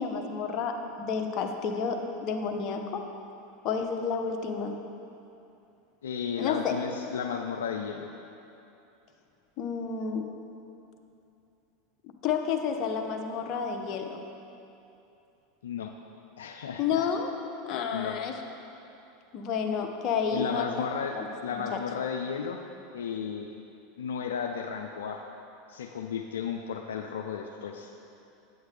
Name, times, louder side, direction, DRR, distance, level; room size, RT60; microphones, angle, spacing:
voice 1, 0.0-3.0 3.6-4.8 6.4-6.7 9.6-10.3 12.2-14.2 16.8-17.3 17.6-18.3 19.3-21.8, left 6 dB, 50° left, 4 dB, 0.8 m, -30 dB
voice 2, 6.0-8.1 15.6-15.9 16.4-17.1 17.9-18.2 20.3-21.2 21.4-22.6 22.9-23.5 24.0-25.2 25.7-27.9, left 7 dB, 85° left, 3 dB, 0.4 m, -33 dB
9.1 x 7.9 x 3.3 m, 2.8 s
hypercardioid pair, 95°, 0 cm